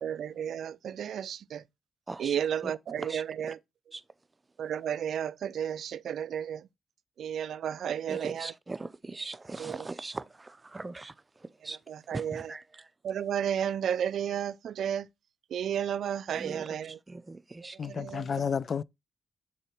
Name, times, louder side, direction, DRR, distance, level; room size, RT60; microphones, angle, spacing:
voice 1, 0.0-1.6 2.2-3.6 4.6-6.6 7.2-8.5 9.6-9.9 11.9-12.5 13.0-15.1 15.5-17.0 17.9-18.3, right 9 dB, 75° right, 0.4 m, -32 dB
voice 2, 8.1-11.1 11.6-11.8 12.1-12.8 16.3-16.7 17.1-18.0, right 2 dB, 25° right, 0.6 m, -40 dB
voice 3, 17.8-18.8, left 7 dB, 55° left, 0.4 m, -31 dB
7.0 x 4.5 x 4.3 m
cardioid pair, 65°, 0 cm